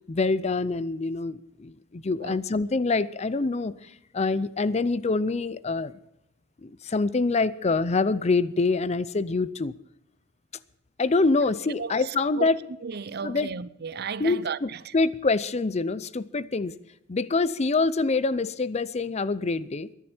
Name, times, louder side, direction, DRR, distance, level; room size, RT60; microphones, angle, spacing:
voice 1, 0.1-6.0 6.6-9.7 11.0-12.6 13.2-13.5 14.2-16.7 17.1-19.9, left 3 dB, 35° left, 0.5 m, -25 dB
voice 2, 11.8-12.5 12.8-14.9, right 6 dB, 55° right, 0.6 m, -34 dB
22.0 x 11.0 x 4.4 m
head